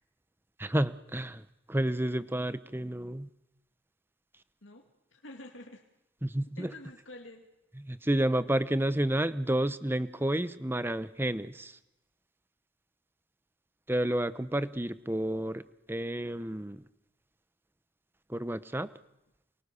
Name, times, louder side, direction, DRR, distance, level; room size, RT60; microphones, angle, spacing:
voice 1, 0.6-3.3 6.2-6.7 7.8-11.7 13.9-16.8 18.3-18.9, right 1 dB, 10° right, 14 dB, 0.9 m, -30 dB
voice 2, 4.6-5.8 6.6-7.5, left 1 dB, 80° left, 2 dB, 2.6 m, -48 dB
28.5 x 23.0 x 7.0 m, 0.92 s
head